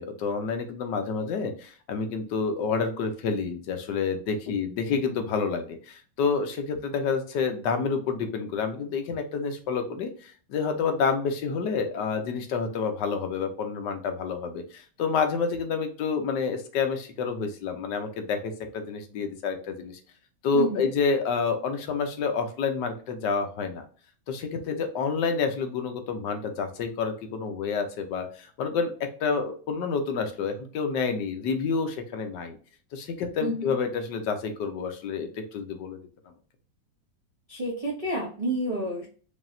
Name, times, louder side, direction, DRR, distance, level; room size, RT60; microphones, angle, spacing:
voice 1, 0.0-20.0 20.4-23.8 24.3-32.6 32.9-36.0, left 5 dB, 75° left, 6 dB, 1.3 m, -29 dB
voice 2, 33.4-33.7 37.5-39.1, equal, 35° right, -4 dB, 0.6 m, -29 dB
5.1 x 2.7 x 2.6 m, 0.41 s
omnidirectional pair, 1.9 m